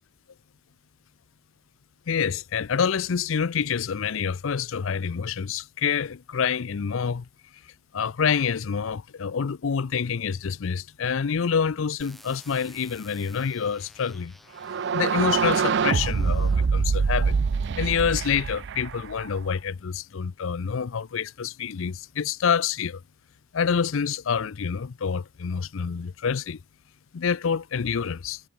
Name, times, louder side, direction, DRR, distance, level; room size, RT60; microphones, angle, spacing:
voice 1, 2.1-7.3 7.9-14.3 14.9-17.4 17.8-23.0 23.5-26.6 27.1-28.4, left 6 dB, 70° left, 0.5 m, -27 dB
sound 1, 12.0-16.7 17.4-18.0, equal, ahead, 6.9 m, -53 dB
sound 2, 14.6-19.4, right 5 dB, 55° right, 0.4 m, -25 dB
head